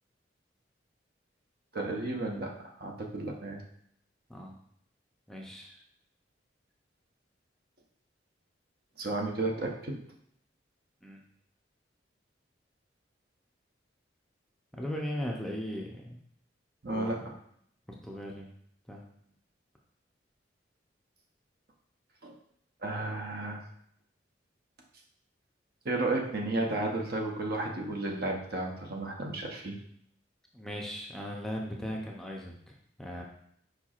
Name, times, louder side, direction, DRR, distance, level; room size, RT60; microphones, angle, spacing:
voice 1, 1.7-3.6 9.0-10.0 16.8-17.3 22.2-22.3 22.8-23.6 25.8-29.8, right 2 dB, 55° right, 1 dB, 0.8 m, -33 dB
voice 2, 5.3-5.8 11.0-11.2 14.7-16.2 16.9-17.2 17.9-18.5 18.9-19.0 30.5-33.2, equal, 5° left, -2 dB, 0.5 m, -38 dB
4.8 x 4.5 x 2.4 m, 0.68 s
head